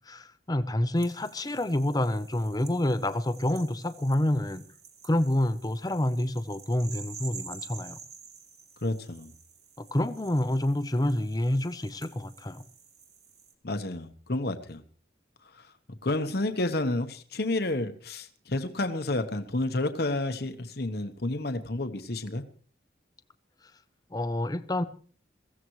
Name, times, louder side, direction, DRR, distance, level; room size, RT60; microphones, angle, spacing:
voice 1, 0.1-4.6 5.0-8.0 9.9-12.6 24.1-24.8, left 1 dB, 20° left, 0.7 m, -28 dB
sound 1, 1.0-13.5, right 6 dB, 35° right, 2.1 m, -49 dB
voice 2, 8.8-9.3 13.6-14.8 15.5-15.7 16.0-22.4, left 2 dB, 60° left, 1.1 m, -30 dB
22.5 x 15.5 x 3.1 m
head